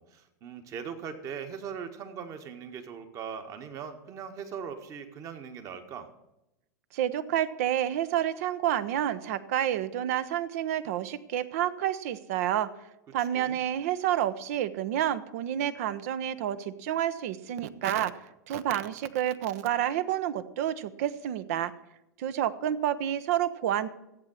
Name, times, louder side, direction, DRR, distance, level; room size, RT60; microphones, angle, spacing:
voice 1, 0.0-6.1 13.2-13.6, right 7 dB, 35° right, 7 dB, 1.6 m, -40 dB
voice 2, 6.9-12.7 13.1-18.2 18.5-21.7 22.2-23.9, right 11 dB, 50° right, 14 dB, 0.9 m, -29 dB
14.5 x 8.6 x 6.4 m, 0.88 s
figure-of-eight pair, 90°, 10 cm